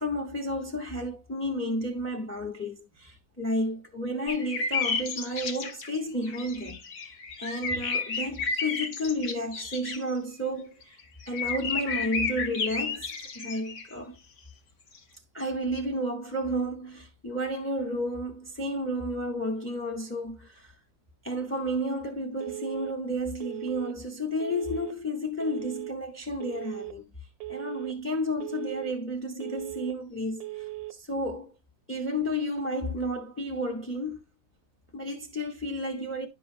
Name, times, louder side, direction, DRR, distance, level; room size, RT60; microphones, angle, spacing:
voice 1, 0.0-6.8 7.4-10.9 11.3-13.1 13.3-14.1 15.3-20.7 21.2-27.1 27.5-30.6 30.9-31.5 31.9-34.2 34.9-36.3, equal, 10° left, 0.7 m, -32 dB
sound 1, 4.3-6.0 6.2-10.0 10.8-13.9 15.0-15.1, left 5 dB, 55° left, 1.2 m, -32 dB
Telephone, 22.4-22.9 23.4-23.9 24.4-24.9 25.4-25.9 26.4-26.9 27.4-27.9 28.4-28.9 29.4-29.9 30.4-30.9, right 18 dB, 70° right, 1.1 m, -38 dB
10.0 x 5.4 x 2.5 m
omnidirectional pair, 1.7 m